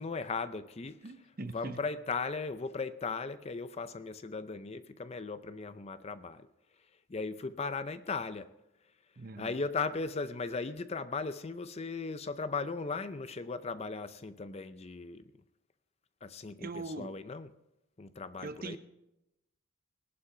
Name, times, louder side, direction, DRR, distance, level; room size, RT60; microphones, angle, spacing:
voice 1, 0.0-1.1 1.5-6.5 7.1-8.5 9.4-15.2 16.2-17.5 18.0-18.8, left 4 dB, 30° left, 0.4 m, -37 dB
voice 2, 1.0-1.8 9.2-9.5 16.6-17.1 18.4-18.8, right 2 dB, 40° right, 0.8 m, -41 dB
20.0 x 11.0 x 3.8 m
head